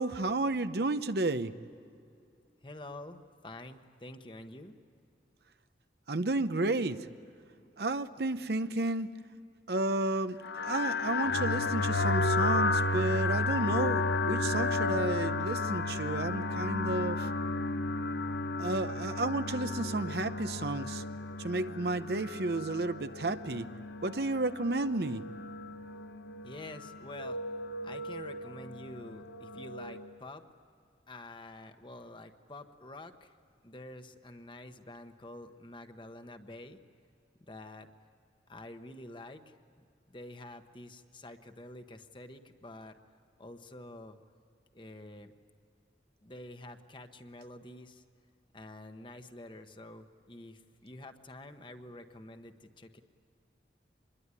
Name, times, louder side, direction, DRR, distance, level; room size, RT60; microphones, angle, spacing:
voice 1, 0.0-1.5 6.1-7.1 7.8-9.1 9.7-17.3 18.6-21.0 21.4-23.7 24.0-25.2, right 2 dB, 65° right, 11 dB, 0.8 m, -32 dB
voice 2, 2.6-4.7 26.4-27.4 27.8-30.4 31.1-33.3 33.6-36.8 37.4-37.9 38.5-39.5 40.1-43.0 43.4-44.2 44.7-45.3 46.2-48.0 48.5-53.0, left 1 dB, 30° left, 7 dB, 1.1 m, -48 dB
sound 1, 10.4-30.1, left 2 dB, 80° left, 0.8 m, -33 dB
26.0 x 21.0 x 9.8 m, 2.5 s
head